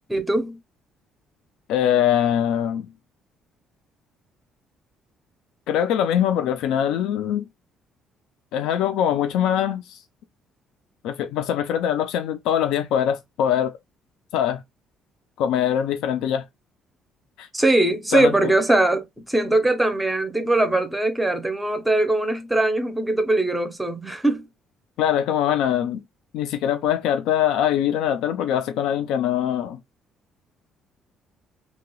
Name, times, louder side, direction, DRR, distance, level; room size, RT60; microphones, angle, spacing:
voice 1, 0.1-0.6 17.5-24.5, right 2 dB, 5° right, 0.5 m, -21 dB
voice 2, 1.7-2.9 5.7-7.4 8.5-10.0 11.0-13.8 14.3-14.6 15.4-16.4 17.4-17.5 18.1-18.5 25.0-26.0 26.3-29.8, left 10 dB, 85° left, 0.5 m, -22 dB
2.8 x 2.2 x 3.0 m
cardioid pair, 170°, 0 cm